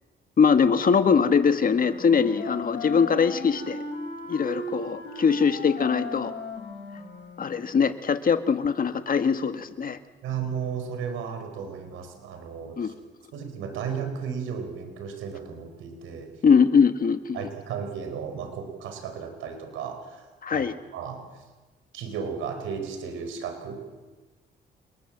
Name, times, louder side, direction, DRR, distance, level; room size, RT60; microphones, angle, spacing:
voice 1, 0.4-3.8 4.3-6.3 7.4-10.0 12.8-12.9 16.4-17.4 20.4-20.7, left 6 dB, 45° left, 9 dB, 1.8 m, -22 dB
Wind instrument woodwind instrument, 1.5-7.6, left 2 dB, 65° left, 6.8 m, -36 dB
voice 2, 10.2-12.9 13.3-16.3 17.3-20.6 20.9-21.3 21.9-23.8, right 6 dB, 90° right, 6 dB, 4.9 m, -34 dB
28.0 x 21.0 x 7.6 m, 1.2 s
cardioid pair, 90°, 20 cm